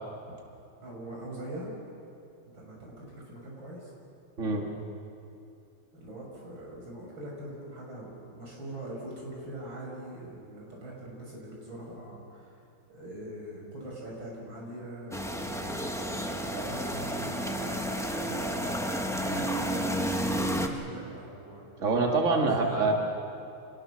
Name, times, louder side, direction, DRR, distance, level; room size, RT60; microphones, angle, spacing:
voice 1, 0.8-1.7 2.5-3.9 5.9-12.5 12.9-21.7 22.3-22.9, right 1 dB, 65° right, -3 dB, 6.3 m, -42 dB
voice 2, 4.4-4.7 21.8-22.9, right 3 dB, 35° right, 1 dB, 2.4 m, -25 dB
sound 1, 15.1-20.7, equal, 5° left, 0.6 m, -31 dB
26.5 x 19.5 x 6.4 m, 2.6 s
omnidirectional pair, 2.3 m